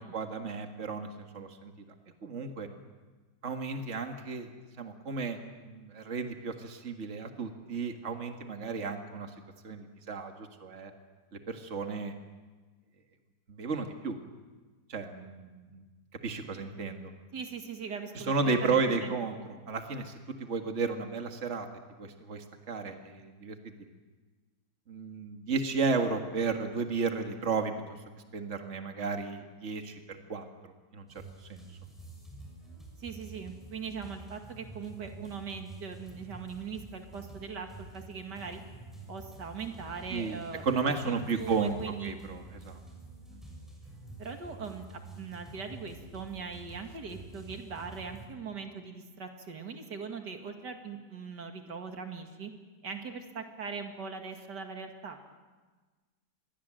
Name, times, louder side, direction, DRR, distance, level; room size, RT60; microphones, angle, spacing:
voice 1, 0.0-1.7 2.2-2.7 3.4-4.5 4.8-9.3 9.6-10.9 11.3-12.1 13.5-14.2 14.9-15.8 16.2-17.1 18.2-19.4 19.7-21.7 22.0-23.6 24.9-27.7 28.3-31.1 31.4-31.7 40.1-41.8 42.0-42.8 43.3-43.4, right 4 dB, 45° right, 5 dB, 2.1 m, -33 dB
voice 2, 17.3-18.3 18.6-19.1 33.0-38.6 39.1-40.6 41.1-42.1 44.2-52.5 52.8-55.2, right 5 dB, 85° right, 5 dB, 2.7 m, -40 dB
sound 1, 31.1-48.3, right 2 dB, ahead, 6.5 m, -48 dB
27.0 x 21.5 x 7.7 m, 1.3 s
omnidirectional pair, 1.8 m